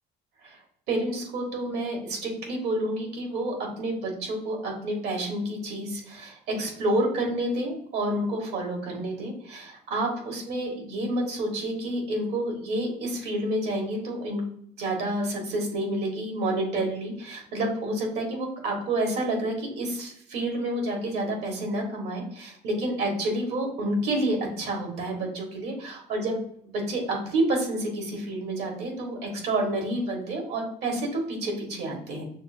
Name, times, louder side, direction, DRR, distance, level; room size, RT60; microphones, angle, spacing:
voice 1, 0.9-14.4 14.8-26.4 26.7-32.2, right 1 dB, 80° right, 1 dB, 1.4 m, -29 dB
6.3 x 2.1 x 2.6 m, 0.66 s
cardioid pair, 110°, 17 cm